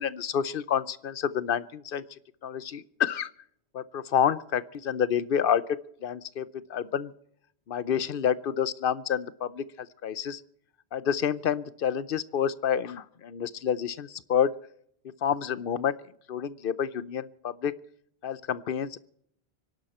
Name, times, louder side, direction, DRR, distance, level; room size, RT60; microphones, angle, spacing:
voice 1, 0.0-3.3 3.7-7.1 7.7-10.4 10.9-14.5 15.2-16.0 16.3-17.7 18.2-19.0, left 8 dB, 60° left, 18 dB, 0.9 m, -29 dB
25.0 x 11.5 x 4.3 m, 0.68 s
omnidirectional pair, 1.1 m